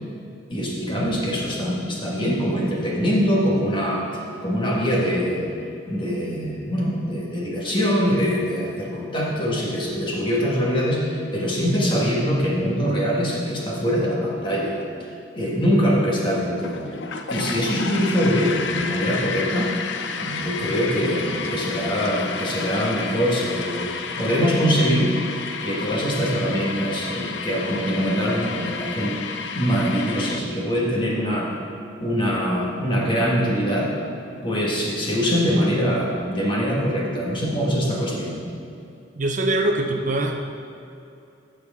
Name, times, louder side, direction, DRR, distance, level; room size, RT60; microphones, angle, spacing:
voice 1, 0.5-4.0 4.4-5.5 5.9-14.8 15.3-16.8 17.3-19.7 20.2-25.1 25.6-29.2 29.6-31.5 32.0-33.9 34.4-38.4, equal, 25° left, -4 dB, 1.7 m, -23 dB
sound 1, 16.6-30.4, left 5 dB, 85° left, 0.6 m, -31 dB
voice 2, 39.2-40.4, right 2 dB, 45° right, 3 dB, 0.6 m, -23 dB
14.5 x 6.3 x 3.7 m, 2.6 s
head